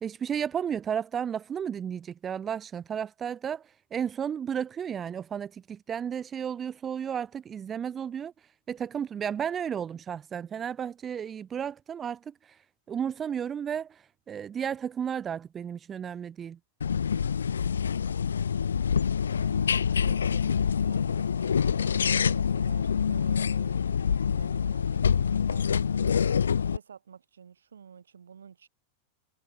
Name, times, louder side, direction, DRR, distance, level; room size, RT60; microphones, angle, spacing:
voice 1, 0.0-8.3 8.7-12.6 12.9-16.6, right 8 dB, 25° right, 0.5 m, -33 dB
sound 1, 16.8-26.8, left 7 dB, 70° left, 0.4 m, -26 dB
voice 2, 19.3-23.9 24.3-25.7 26.5-28.7, right 7 dB, 70° right, 3.8 m, -51 dB
figure-of-eight pair, 90°, 0 cm